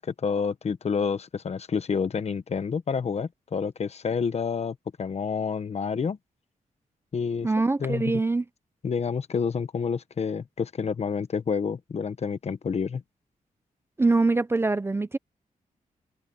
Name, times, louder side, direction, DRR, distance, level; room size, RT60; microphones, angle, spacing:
voice 1, 0.0-6.2 7.1-7.5 7.8-8.2 8.8-13.0, left 6 dB, 45° left, 1.1 m, -29 dB
voice 2, 7.4-8.4 14.0-15.2, right 3 dB, 15° right, 0.5 m, -23 dB
wide cardioid pair, 150°, 15 cm